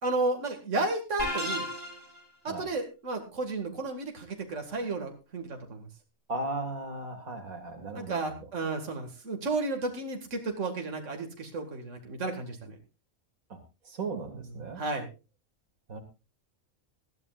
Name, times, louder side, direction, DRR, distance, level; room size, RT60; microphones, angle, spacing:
voice 1, 0.0-1.7 2.4-5.8 7.9-12.7 14.8-15.1, right 3 dB, 60° right, 3 dB, 2.3 m, -32 dB
sound 1, 1.2-2.2, equal, 35° right, 6.6 m, -33 dB
voice 2, 6.3-8.5 13.5-13.6 13.9-14.8 15.9-16.0, right 2 dB, 80° right, 6 dB, 2.5 m, -36 dB
19.5 x 13.5 x 2.4 m, 0.29 s
omnidirectional pair, 1.4 m